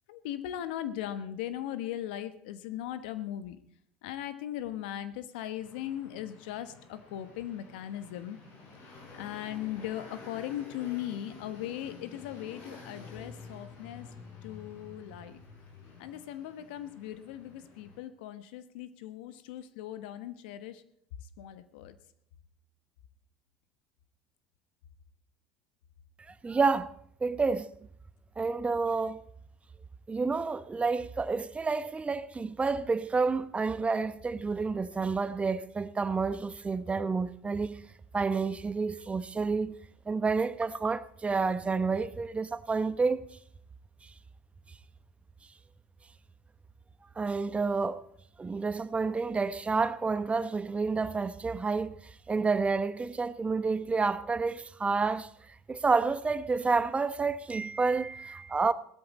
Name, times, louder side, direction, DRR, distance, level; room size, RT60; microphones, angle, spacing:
voice 1, 0.1-3.6 4.0-8.4 9.1-14.1 14.4-15.4 16.0-20.8 21.4-21.9, left 12 dB, 75° left, 1.1 m, -38 dB
sound 1, 5.6-18.0, left 4 dB, 60° left, 7.1 m, -50 dB
voice 2, 26.4-26.9 27.2-27.7 28.4-29.2 30.1-37.8 38.1-39.8 40.1-43.2 47.2-48.1 48.4-52.0 52.3-55.3 55.7-58.7, right 4 dB, 25° right, 0.9 m, -29 dB
17.5 x 13.0 x 4.2 m
hypercardioid pair, 70°, 5 cm